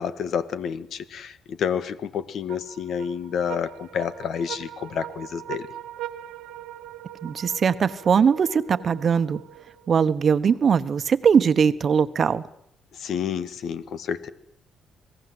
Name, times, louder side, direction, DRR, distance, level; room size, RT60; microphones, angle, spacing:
voice 1, 0.0-5.6 13.0-14.3, left 7 dB, 70° left, 13 dB, 1.5 m, -29 dB
sound 1, 2.5-10.0, right 12 dB, 85° right, 1.0 m, -41 dB
voice 2, 7.2-9.4 9.9-12.4, right 6 dB, 50° right, 13 dB, 1.1 m, -20 dB
26.5 x 18.0 x 7.9 m, 0.75 s
cardioid pair, 90°, 0 cm